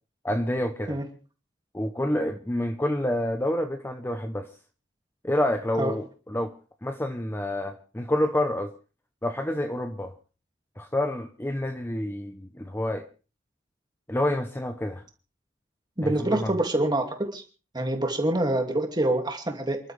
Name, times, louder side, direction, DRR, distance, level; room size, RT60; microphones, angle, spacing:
voice 1, 0.2-1.0 1.7-4.5 5.2-6.5 6.8-8.7 9.2-10.1 10.8-13.0 14.1-15.0 16.0-16.5, left 1 dB, 10° left, 6 dB, 0.9 m, -28 dB
voice 2, 16.0-17.4 17.7-19.8, right 1 dB, 20° right, 4 dB, 2.5 m, -26 dB
29.0 x 12.0 x 3.4 m, 0.37 s
head